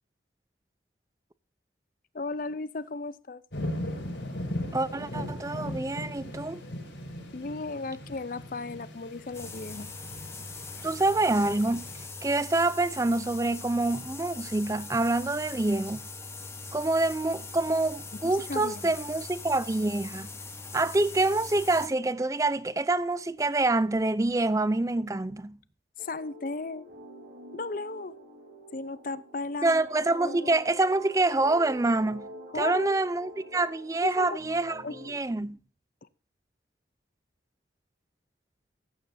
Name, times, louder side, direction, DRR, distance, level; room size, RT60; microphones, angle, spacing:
voice 1, 2.1-3.4 7.3-9.9 18.1-18.9 26.0-26.9 27.5-28.2 28.7-29.8 30.2-30.6 32.5-33.0 34.0-34.4 34.7-35.0, left 3 dB, 45° left, 0.5 m, -35 dB
sound 1, 3.5-12.1, left 1 dB, 80° left, 4.6 m, -38 dB
voice 2, 4.7-6.6 10.8-11.9 12.2-16.1 16.7-20.3 20.7-25.6 29.6-32.3 32.5-35.6, right 2 dB, 15° right, 0.4 m, -26 dB
sound 2, 9.3-21.9, left 3 dB, 15° left, 0.9 m, -41 dB
sound 3, 26.0-35.1, equal, 80° right, 3.2 m, -47 dB
14.5 x 9.1 x 2.6 m
head